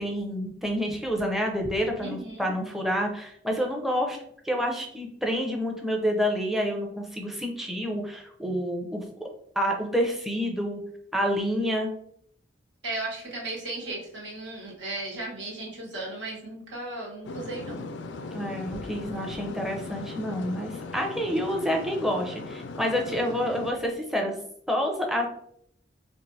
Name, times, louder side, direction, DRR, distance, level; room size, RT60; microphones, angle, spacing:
voice 1, 0.0-4.2 4.4-9.3 9.6-10.8 11.1-11.9 18.3-24.3 24.7-25.3, equal, ahead, 1 dB, 0.5 m, -28 dB
voice 2, 2.0-2.5 12.8-17.9 23.4-23.5, right 2 dB, 80° right, -3 dB, 1.3 m, -36 dB
sound 1, 17.2-23.7, left 3 dB, 75° left, 0.3 m, -38 dB
4.5 x 2.5 x 2.7 m, 0.69 s
head